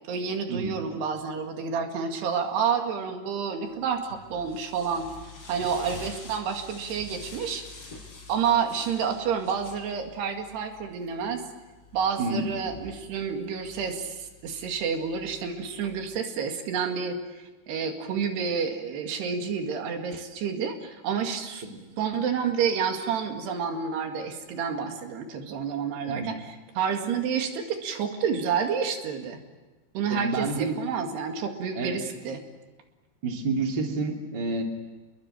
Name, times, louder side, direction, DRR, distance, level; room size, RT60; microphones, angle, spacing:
voice 1, 0.1-5.1 5.5-7.6 8.3-11.4 11.9-17.2 17.7-21.6 22.0-29.4 29.9-32.4, right 6 dB, 85° right, 5 dB, 4.2 m, -29 dB
sound 1, 3.8-16.2, left 4 dB, 35° left, 6.8 m, -47 dB
voice 2, 12.2-12.5 21.6-21.7 26.1-26.3 30.1-30.8 31.7-32.0 33.2-34.6, right 3 dB, 30° right, 2 dB, 3.1 m, -29 dB
28.0 x 22.0 x 9.1 m, 1.2 s
omnidirectional pair, 4.7 m